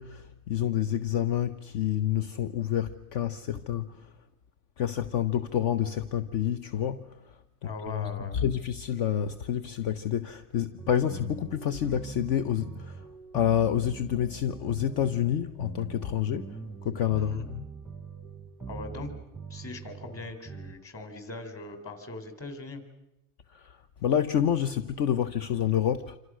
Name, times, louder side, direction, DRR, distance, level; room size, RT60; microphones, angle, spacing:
voice 1, 0.0-4.1 4.8-7.2 7.9-13.0 13.3-17.6 23.5-26.2, left 10 dB, 60° left, 1.1 m, -28 dB
voice 2, 7.6-8.4 17.2-17.5 18.7-19.1 19.5-22.8, left 3 dB, 30° left, 4.1 m, -40 dB
sound 1, 10.8-20.9, right 5 dB, 5° right, 0.8 m, -43 dB
27.0 x 26.5 x 6.4 m
cardioid pair, 150°, 46 cm